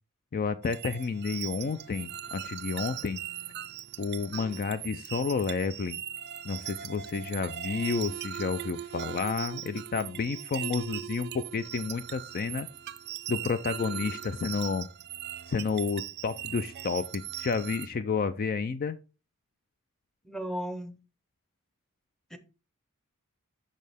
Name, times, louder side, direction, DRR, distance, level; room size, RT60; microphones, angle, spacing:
voice 1, 0.3-3.2 4.0-6.0 6.4-12.7 13.3-14.9 15.5-19.0, left 5 dB, 40° left, 0.4 m, -31 dB
sound 1, 0.6-17.9, right 11 dB, 50° right, 0.4 m, -39 dB
voice 2, 20.2-20.9 22.3-22.4, right 1 dB, ahead, 0.7 m, -35 dB
6.4 x 6.4 x 3.4 m
head